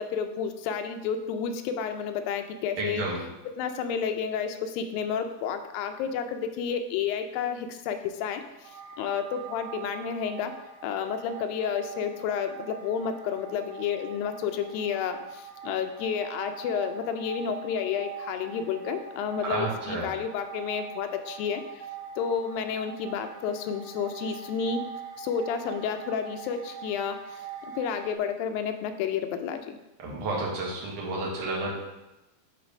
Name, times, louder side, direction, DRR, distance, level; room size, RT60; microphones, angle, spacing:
voice 1, 0.0-3.0 3.6-10.5 10.8-21.8 22.2-24.8 25.2-27.4 27.8-29.8, left 7 dB, 80° left, 7 dB, 2.3 m, -31 dB
voice 2, 2.8-3.2 19.4-20.1 30.0-31.7, right 2 dB, 55° right, -3 dB, 2.4 m, -31 dB
sound 1, 8.6-28.1, right 7 dB, 75° right, 2.7 m, -43 dB
9.5 x 3.5 x 5.1 m, 0.99 s
omnidirectional pair, 4.3 m